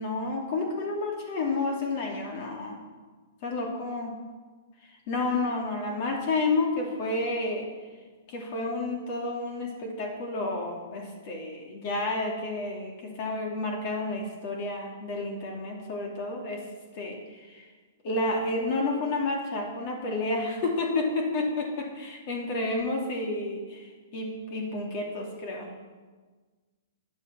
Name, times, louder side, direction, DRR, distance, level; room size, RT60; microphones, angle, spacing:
voice 1, 0.0-2.8 3.4-4.1 5.1-7.7 8.3-16.6 16.9-17.7 18.0-25.7, left 2 dB, 45° left, 0 dB, 2.8 m, -30 dB
12.0 x 10.0 x 6.9 m, 1.4 s
hypercardioid pair, 140°, 0 cm